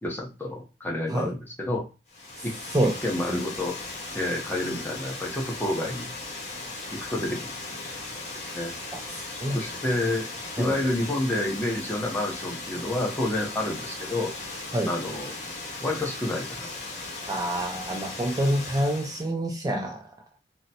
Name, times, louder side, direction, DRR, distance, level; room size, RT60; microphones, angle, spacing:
voice 1, 0.0-1.9 2.4-2.5 3.0-3.8 4.1-6.1 7.1-7.5 8.5-8.7 9.5-10.3 10.6-14.3 14.9-15.3 15.8-16.7, left 1 dB, 10° left, -1 dB, 0.8 m, -29 dB
Water, 2.1-19.3, left 3 dB, 40° left, 1.3 m, -37 dB
voice 2, 8.9-9.6 10.5-10.8 14.7-14.9 17.3-20.1, right 1 dB, 20° right, 2 dB, 0.3 m, -27 dB
3.8 x 2.0 x 2.7 m, 0.30 s
head